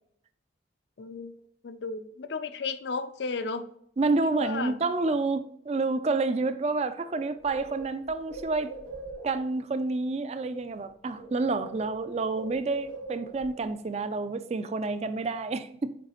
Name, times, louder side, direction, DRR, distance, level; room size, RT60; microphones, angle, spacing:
voice 1, 1.0-1.3 1.6-3.6 4.2-4.8, left 4 dB, 65° left, 0.5 m, -34 dB
voice 2, 4.0-8.7 9.2-16.0, right 3 dB, 35° right, 0.4 m, -29 dB
Bird, 6.7-6.8 7.0-9.6 10.6-10.9 11.1-13.6, right 2 dB, 90° right, 1.6 m, -43 dB
6.8 x 4.8 x 3.0 m
head